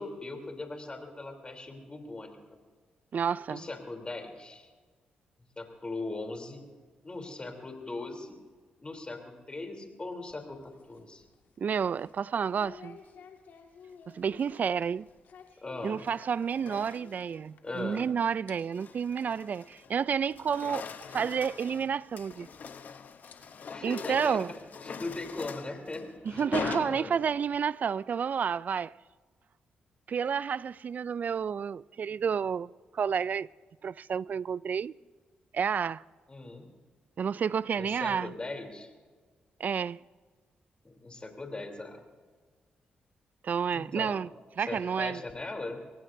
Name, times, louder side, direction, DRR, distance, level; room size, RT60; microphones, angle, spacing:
voice 1, 0.0-2.4 3.5-4.7 5.6-6.6 7.0-8.4 8.8-11.2 15.6-16.0 17.6-18.0 20.7-20.9 23.7-24.6 24.8-26.4 26.9-27.2 36.3-36.7 37.7-38.9 40.8-42.0 43.7-44.2 44.7-45.8, left 2 dB, 30° left, 3.3 m, -39 dB
voice 2, 3.1-3.6 11.6-13.0 14.1-15.1 15.8-20.9 21.1-22.5 23.8-24.5 26.3-28.9 30.1-33.5 33.8-34.9 35.5-36.0 37.2-38.3 39.6-40.0 43.4-44.3 44.6-45.2, right 7 dB, 55° right, 0.3 m, -30 dB
sound 1, 10.0-18.0 18.2-18.5 18.9-19.0 19.7-19.8 20.3-20.4 20.8-20.9 22.3-22.4 23.1-24.5, left 6 dB, 75° left, 2.0 m, -54 dB
sound 2, 14.2-14.7 15.8-17.3 17.8-18.1 18.5-20.0 20.2-27.6, left 6 dB, 60° left, 0.9 m, -42 dB
23.5 x 19.0 x 2.7 m
supercardioid pair, 60°, 3 cm